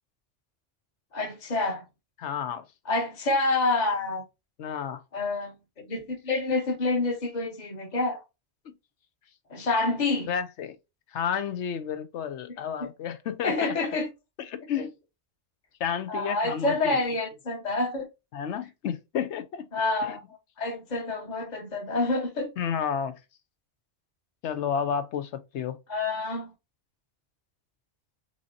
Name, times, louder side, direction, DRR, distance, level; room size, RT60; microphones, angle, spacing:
voice 1, 1.1-1.8 2.8-4.2 5.1-8.2 9.5-10.3 12.5-12.9 13.4-14.1 14.8-14.9 16.1-18.1 19.7-20.2 20.6-22.5 25.9-26.5, left 2 dB, 40° left, 1.2 m, -28 dB
voice 2, 2.2-2.6 4.6-5.0 10.3-10.8 11.1-13.8 14.4-14.9 15.8-17.0 18.3-19.7 20.0-20.1 22.6-23.1 24.4-25.8, left 8 dB, 85° left, 1.0 m, -31 dB
6.1 x 2.8 x 2.7 m
omnidirectional pair, 1.1 m